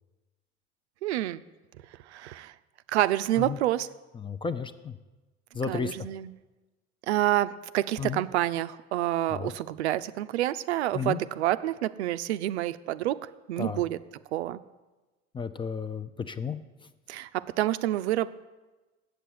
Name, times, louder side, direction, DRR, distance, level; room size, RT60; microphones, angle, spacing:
voice 1, 1.0-1.4 2.1-2.5 2.9-3.9 5.7-6.3 7.1-13.2 13.5-14.0 14.3-14.6 17.1-18.3, right 14 dB, 70° right, 14 dB, 0.5 m, -28 dB
voice 2, 4.2-5.0 5.5-5.9 8.0-8.2 9.3-9.5 10.9-11.2 13.6-13.8 15.3-16.6, left 6 dB, 15° left, 12 dB, 0.4 m, -33 dB
7.8 x 6.8 x 7.7 m, 1.2 s
figure-of-eight pair, 70°, 34 cm